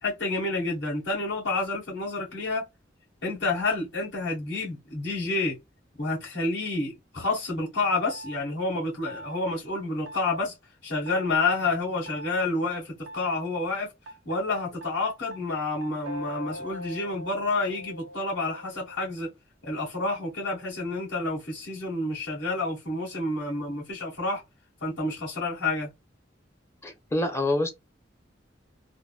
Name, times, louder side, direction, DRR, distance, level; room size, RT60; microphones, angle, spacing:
voice 1, 0.0-2.6 3.2-5.6 6.0-10.5 10.8-13.9 14.2-19.3 19.6-24.4 24.8-25.9, left 3 dB, 75° left, 1.9 m, -29 dB
sound 1, 8.1-8.4 9.1-9.4 10.1-10.4 11.1-11.4 12.1-12.4 13.1-13.4 14.1-19.1, equal, 80° right, 0.7 m, -42 dB
voice 2, 26.8-27.7, left 2 dB, 15° left, 0.6 m, -26 dB
3.4 x 2.1 x 2.4 m
head